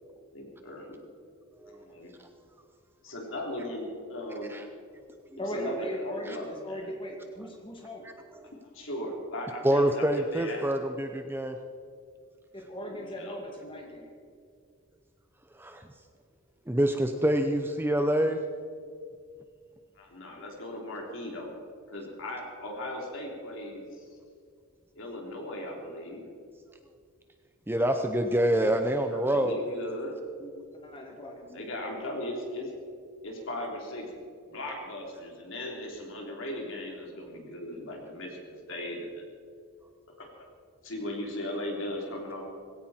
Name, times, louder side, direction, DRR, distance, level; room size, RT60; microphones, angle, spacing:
voice 1, 0.3-1.0 1.7-2.1 3.0-4.5 5.4-6.9 8.7-10.8 12.8-13.4 19.9-21.5 21.9-24.1 24.9-26.2 29.1-30.1 31.5-32.7 33.2-39.2 40.2-40.5 40.8-42.4, left 1 dB, 60° left, 0 dB, 3.5 m, -38 dB
voice 2, 5.4-8.1 12.5-14.1 30.4-30.5 30.8-31.6 31.9-32.0, equal, 25° left, 0 dB, 2.4 m, -38 dB
voice 3, 9.6-11.6 15.6-15.8 16.7-18.4 27.7-29.6, right 1 dB, 10° right, 6 dB, 0.7 m, -26 dB
19.5 x 16.5 x 4.4 m, 2.2 s
head